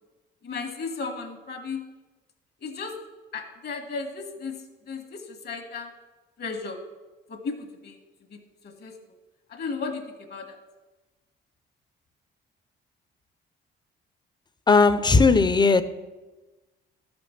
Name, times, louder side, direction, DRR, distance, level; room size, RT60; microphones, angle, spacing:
voice 1, 0.4-1.8 2.6-2.9 3.3-5.9 6.4-6.8 7.3-8.0 8.3-8.9 9.5-10.6, left 4 dB, 55° left, 1.5 m, -35 dB
voice 2, 14.7-15.8, left 4 dB, 20° left, 0.5 m, -17 dB
12.5 x 5.2 x 5.7 m
cardioid pair, 90°, 20 cm